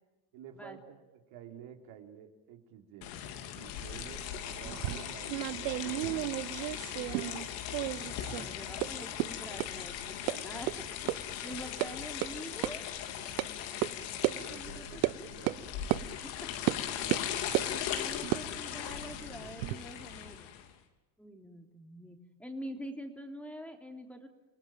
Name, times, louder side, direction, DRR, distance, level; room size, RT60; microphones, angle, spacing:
voice 1, 0.3-3.1 3.5-6.5 8.0-8.5 10.2-10.9 13.2-13.7 14.3-16.1 17.0-17.3, right 9 dB, 70° right, 4 dB, 3.8 m, -51 dB
sound 1, 3.0-20.7, left 10 dB, 80° left, 3.4 m, -39 dB
sound 2, 4.6-7.5 7.7-8.5 8.8-8.9 9.2-9.3 9.6-9.7 10.3-10.4 10.7-10.8 11.1-11.2 11.5-11.9 12.2-12.3 12.6-12.7 13.4-13.5 13.8-13.9 14.2-14.4 15.0-15.2 15.5-15.6 15.9-16.0 16.7-16.8 17.1-17.7 18.2-19.8, right 20 dB, 85° right, 1.0 m, -32 dB
voice 2, 8.4-10.7 11.2-12.8 14.4-15.0 16.2-16.5 17.0-17.1 17.5-20.5 21.2-24.3, equal, 5° left, 4 dB, 3.3 m, -46 dB
28.5 x 18.5 x 9.0 m, 1.1 s
supercardioid pair, 105°, 50 cm